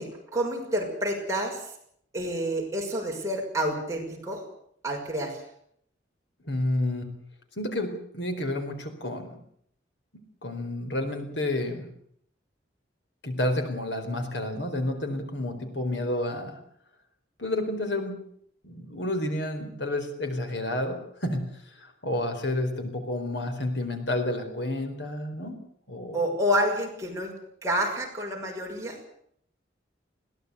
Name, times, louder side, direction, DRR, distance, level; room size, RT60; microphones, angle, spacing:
voice 1, 0.0-1.7 2.1-4.4 4.8-5.4 26.1-27.3 27.6-29.0, equal, 15° right, -1 dB, 6.2 m, -29 dB
voice 2, 6.4-7.1 7.6-9.4 10.4-11.9 13.2-16.6 17.4-18.2 18.6-21.4 21.8-25.6 25.9-26.3, left 1 dB, 70° left, 6 dB, 4.4 m, -30 dB
22.0 x 17.5 x 8.2 m, 0.68 s
head